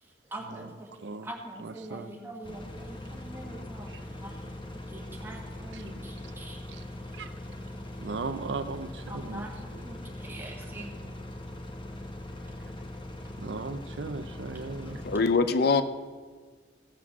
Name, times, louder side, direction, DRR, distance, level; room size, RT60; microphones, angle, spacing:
voice 1, 0.3-0.9 1.2-6.6 9.1-11.0 14.8-15.0, right 1 dB, 15° right, -2 dB, 1.8 m, -44 dB
voice 2, 1.6-2.1 3.9-4.1 5.7-5.8 6.7-6.8 7.1-7.3 8.0-9.5 13.4-15.0, right 3 dB, 80° right, 10 dB, 0.6 m, -37 dB
sound 1, 2.4-15.2, left 1 dB, 30° left, 0.9 m, -41 dB
voice 3, 15.0-15.8, left 4 dB, 60° left, 11 dB, 0.5 m, -23 dB
15.5 x 5.9 x 6.1 m, 1.5 s
head